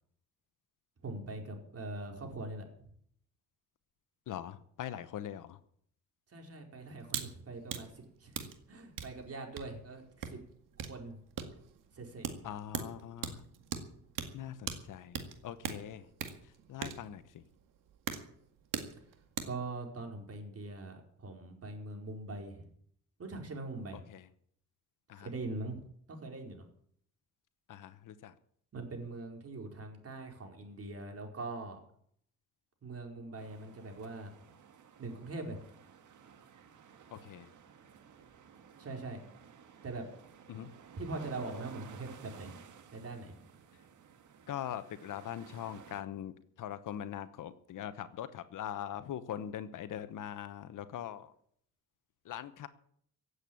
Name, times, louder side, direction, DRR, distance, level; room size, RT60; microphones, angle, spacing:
voice 1, 1.0-2.6 6.3-8.3 8.7-10.4 10.8-11.2 11.9-12.3 19.4-22.7 23.2-24.0 25.2-25.8 26.1-26.6 28.7-31.8 32.8-34.3 35.0-35.6 38.8-39.2 39.8-40.0 41.0-42.5 42.9-43.3, right 2 dB, 45° right, 3 dB, 4.5 m, -42 dB
voice 2, 4.3-5.6 12.4-13.4 14.3-16.1 16.4-17.4 24.1-24.3 25.1-25.3 27.7-28.3 37.1-37.5 40.5-40.7 44.5-51.3 52.2-52.7, left 10 dB, 75° left, 12 dB, 1.1 m, -42 dB
sound 1, 7.0-7.3 7.6-19.6, right 8 dB, 85° right, 2.0 m, -42 dB
sound 2, 33.4-46.0, right 7 dB, 65° right, 1.8 m, -55 dB
16.5 x 8.2 x 8.8 m, 0.66 s
cardioid pair, 85°, 32 cm